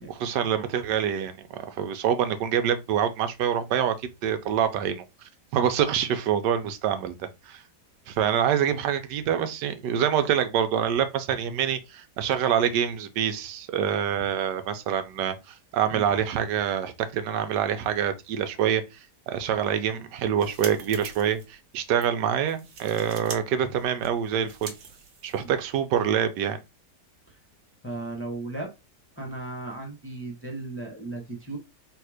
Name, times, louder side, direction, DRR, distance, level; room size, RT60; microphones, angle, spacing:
voice 1, 0.1-5.0 5.5-7.6 8.1-24.7 25.2-26.6, right 9 dB, 90° right, 1.3 m, -26 dB
sound 1, 20.2-21.5 21.9-22.1 22.5-23.4 23.6-25.6, right 5 dB, 60° right, 1.3 m, -42 dB
voice 2, 27.8-28.7 29.2-31.6, right 2 dB, 10° left, 0.9 m, -36 dB
3.6 x 2.8 x 4.8 m
omnidirectional pair, 1.8 m